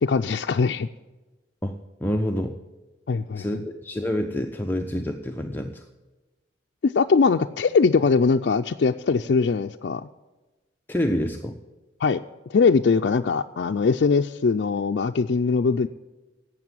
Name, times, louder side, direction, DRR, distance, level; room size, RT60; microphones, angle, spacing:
voice 1, 0.0-0.9 3.1-3.6 6.8-10.1 12.0-12.2 12.5-15.9, left 4 dB, 65° left, 4 dB, 0.4 m, -21 dB
voice 2, 1.6-2.6 3.4-5.8 10.9-11.6, equal, 10° left, 3 dB, 0.6 m, -27 dB
12.0 x 8.1 x 9.2 m, 1.2 s
head